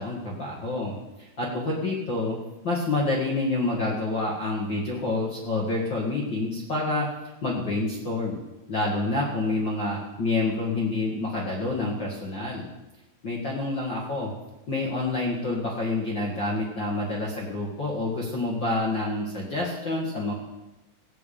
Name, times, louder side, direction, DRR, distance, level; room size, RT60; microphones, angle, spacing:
voice 1, 0.0-2.4 2.6-7.1 7.4-8.4 8.7-12.7 13.2-14.3 14.7-20.3, left 2 dB, 70° left, -3 dB, 1.0 m, -28 dB
17.0 x 5.9 x 8.6 m, 1.0 s
omnidirectional pair, 5.4 m